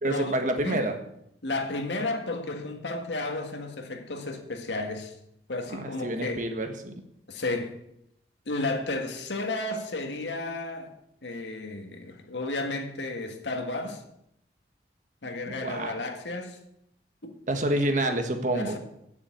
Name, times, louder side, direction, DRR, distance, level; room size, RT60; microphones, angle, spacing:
voice 1, 0.0-0.9 5.7-6.9 15.5-15.9 17.5-18.8, right 1 dB, 45° right, 1.4 m, -28 dB
voice 2, 1.4-5.1 5.5-6.5 7.3-7.7 8.5-10.9 11.2-14.0 15.2-16.6 17.2-17.3 18.5-18.8, left 2 dB, 85° left, 1.8 m, -32 dB
9.7 x 7.0 x 8.6 m
head